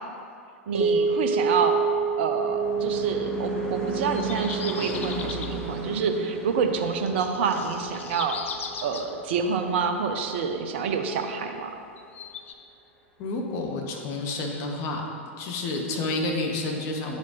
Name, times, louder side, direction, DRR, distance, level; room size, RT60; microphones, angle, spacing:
voice 1, 0.7-1.8 2.2-8.4 8.8-11.7, right 5 dB, 55° right, 6 dB, 0.6 m, -27 dB
sound 1, 0.7-9.0, right 5 dB, 85° right, 1.3 m, -29 dB
Car passing by / Truck / Engine, 1.4-10.1, right 1 dB, 10° left, 1.2 m, -36 dB
sound 2, 4.1-5.6 7.0-9.1 12.0-12.5, left 6 dB, 65° left, 0.5 m, -38 dB
voice 2, 13.2-15.0 15.4-17.2, left 2 dB, 40° left, 1 dB, 1.1 m, -29 dB
8.7 x 5.7 x 3.0 m, 2.3 s
figure-of-eight pair, 90°, 7 cm